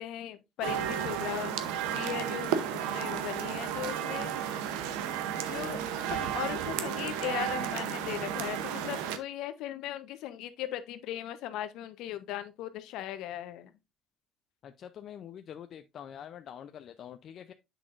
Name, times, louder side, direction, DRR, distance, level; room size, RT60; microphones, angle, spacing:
voice 1, 0.0-1.5 1.9-4.6 5.4-5.8 6.1-13.7, left 12 dB, 75° left, 0.9 m, -38 dB
sound 1, 0.6-9.2, right 9 dB, 85° right, 0.8 m, -33 dB
voice 2, 14.6-17.5, left 9 dB, 55° left, 0.5 m, -45 dB
8.1 x 6.0 x 2.5 m
supercardioid pair, 75°, 0 cm